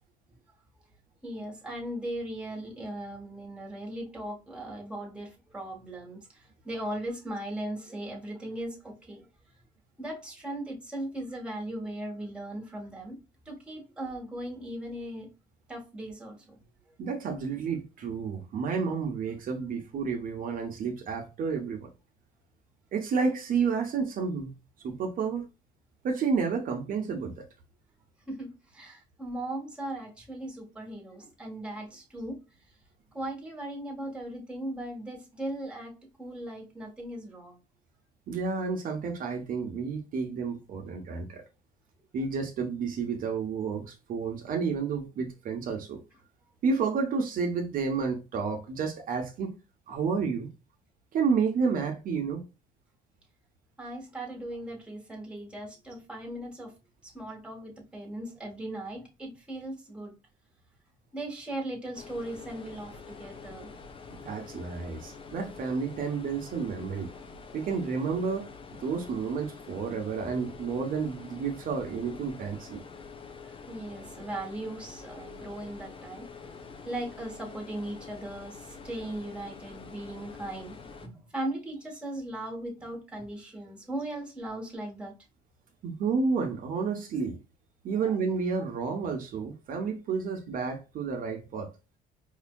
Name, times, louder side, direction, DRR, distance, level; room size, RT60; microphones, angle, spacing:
voice 1, 1.2-9.3 10.0-13.2 13.4-15.3 15.7-16.6 28.3-32.4 33.1-35.9 36.2-37.6 53.8-56.7 57.0-60.1 61.1-63.7 73.3-85.1 87.9-88.1, right 1 dB, 5° right, 1.4 m, -38 dB
voice 2, 17.0-21.9 22.9-24.5 24.8-25.5 26.0-27.4 38.3-41.4 42.1-46.0 46.6-49.5 49.9-50.5 51.1-52.4 64.1-67.1 67.5-68.5 68.8-72.8 85.8-87.4 87.8-91.7, right 5 dB, 55° right, 0.8 m, -30 dB
sound 1, 61.9-81.1, left 5 dB, 30° left, 0.6 m, -46 dB
4.7 x 2.6 x 2.3 m
cardioid pair, 110°, 17 cm